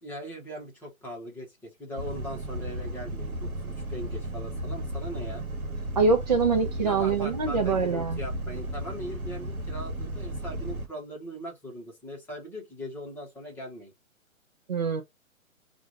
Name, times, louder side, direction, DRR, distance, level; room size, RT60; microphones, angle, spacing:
voice 1, 0.0-5.4 6.8-13.9, equal, 5° left, 1.0 m, -40 dB
sound 1, 2.0-10.9, right 1 dB, 85° right, 1.0 m, -34 dB
voice 2, 6.0-8.2 14.7-15.0, right 4 dB, 30° right, 0.5 m, -24 dB
4.8 x 2.5 x 2.9 m
figure-of-eight pair, 130°, 42 cm